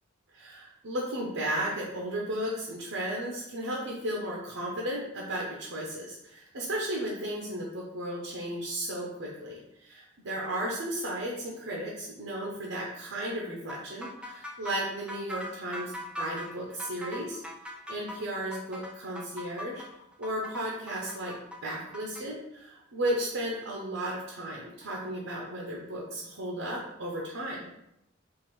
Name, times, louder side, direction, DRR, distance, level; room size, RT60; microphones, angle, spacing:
voice 1, 0.3-17.4 17.9-19.8 20.2-27.7, right 1 dB, 75° right, -2 dB, 0.8 m, -34 dB
sound 1, 13.7-22.2, left 1 dB, 5° right, 0.4 m, -41 dB
3.8 x 2.5 x 4.6 m, 0.84 s
head